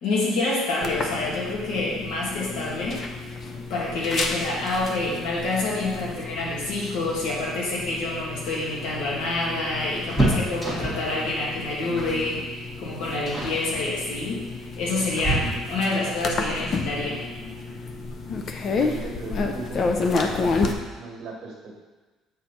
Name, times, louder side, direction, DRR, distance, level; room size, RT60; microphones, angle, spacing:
voice 1, 0.0-3.0 3.7-14.4 14.8-17.2, left 2 dB, 80° left, -5 dB, 2.3 m, -27 dB
sound 1, 0.8-20.7, left 3 dB, 40° left, 0.6 m, -31 dB
sound 2, 8.4-11.1 11.9-12.3 12.6-12.8 13.3-13.6 14.5-15.9 17.7-17.8 18.2-18.3 19.4-19.9 20.2-20.3 20.6-20.8, right 1 dB, 5° left, 1.6 m, -29 dB
voice 2, 18.7-21.8, right 3 dB, 50° right, -1 dB, 1.7 m, -37 dB
8.0 x 4.5 x 4.2 m, 1.3 s
cardioid pair, 140°, 0 cm